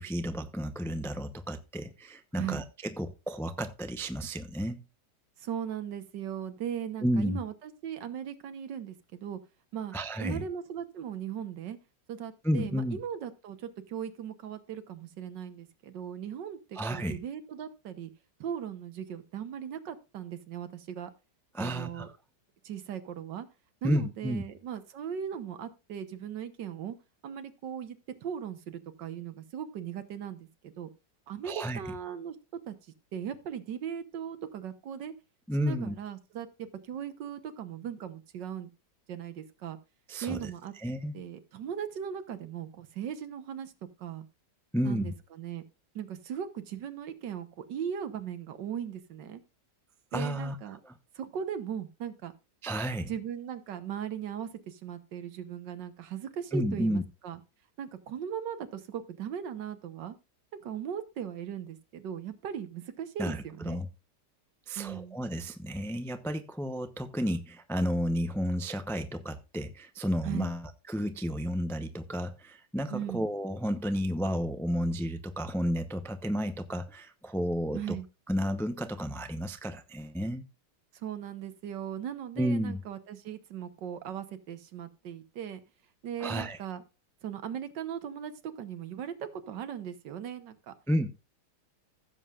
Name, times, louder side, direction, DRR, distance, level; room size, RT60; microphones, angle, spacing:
voice 1, 0.0-2.6 3.0-4.8 7.0-7.4 9.9-10.4 12.4-13.0 16.7-17.2 21.5-22.1 23.8-24.4 31.4-31.8 35.5-35.9 40.1-40.5 40.8-41.1 44.7-45.1 50.1-50.6 50.9-51.0 52.6-53.1 56.5-57.0 63.2-63.9 64.7-70.6 70.9-77.8 78.3-80.4 82.4-82.8 86.2-86.6 90.9-91.1, equal, 5° left, 0.3 m, -32 dB
voice 2, 5.4-9.4 9.7-11.8 12.1-18.1 18.4-21.1 21.6-22.1 22.6-23.5 23.8-27.0 27.2-30.9 31.3-32.8 33.1-35.1 35.6-38.7 39.1-39.8 40.2-40.7 41.1-43.7 44.0-44.3 44.8-45.6 46.0-49.4 50.1-50.8 51.2-52.3 53.0-57.4 57.8-60.2 60.6-63.8 64.8-65.2 70.2-70.5 72.9-73.2 77.7-78.1 80.9-85.6 86.0-86.8 87.2-90.7, right 8 dB, 85° right, 1.7 m, -38 dB
16.0 x 7.6 x 2.4 m
omnidirectional pair, 1.9 m